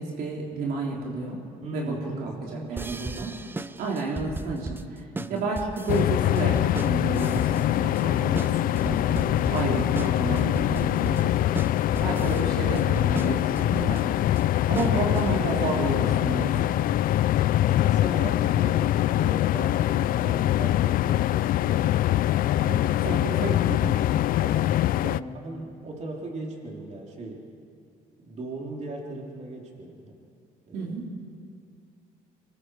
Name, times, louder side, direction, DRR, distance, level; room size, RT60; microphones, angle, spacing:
voice 1, 0.0-1.4 1.7-1.9 2.2-3.4 3.8-5.0 5.3-11.4 12.0-14.0 14.7-16.7 22.5-24.0 25.0-25.3 30.7-31.1, right 3 dB, 80° right, -2 dB, 3.3 m, -31 dB
voice 2, 1.6-2.9 5.1-5.5 10.6-10.9 12.0-12.3 17.6-22.0 22.6-22.8 24.4-24.9 25.3-27.5 28.2-30.1 30.7-31.0, right 2 dB, 50° right, -1 dB, 3.6 m, -38 dB
sound 1, 2.8-15.7, right 2 dB, 15° right, 0.6 m, -37 dB
sound 2, 5.9-25.2, left 13 dB, 65° left, 0.4 m, -23 dB
25.5 x 21.5 x 4.9 m, 2.4 s
cardioid pair, 100°, 16 cm